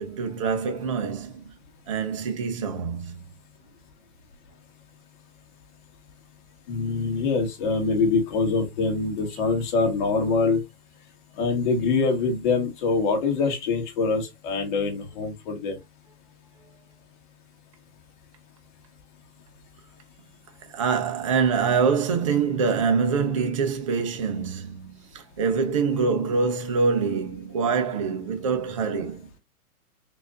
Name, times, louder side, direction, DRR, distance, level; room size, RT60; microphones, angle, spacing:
voice 1, 0.0-1.5 1.9-3.2 20.7-29.3, right 5 dB, 25° right, 0.5 m, -25 dB
voice 2, 6.7-10.6 11.4-15.8, left 4 dB, 30° left, 1.7 m, -24 dB
4.1 x 3.3 x 3.6 m
hypercardioid pair, 160°, 44 cm